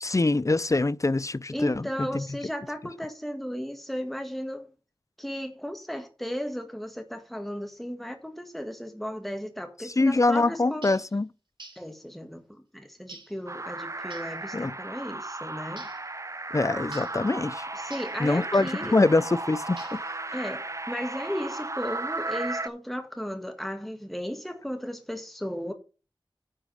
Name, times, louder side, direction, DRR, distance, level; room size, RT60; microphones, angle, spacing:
voice 1, 0.0-1.9 2.1-2.2 9.8-11.3 14.5-14.7 16.5-17.7 18.2-20.0, left 2 dB, 40° left, 0.5 m, -24 dB
voice 2, 1.5-4.7 5.2-10.9 11.7-15.9 17.7-18.9 20.3-25.7, equal, ahead, 1.6 m, -35 dB
sound 1, 10.8-11.1 11.6-11.9 13.1-13.4 14.1-14.4 15.8-16.1 16.9-17.2 17.9-18.2 19.8-20.2, right 3 dB, 70° right, 3.5 m, -47 dB
sound 2, 13.5-22.7, right 2 dB, 35° right, 0.7 m, -35 dB
10.0 x 4.9 x 6.4 m
wide cardioid pair, 45°, 9 cm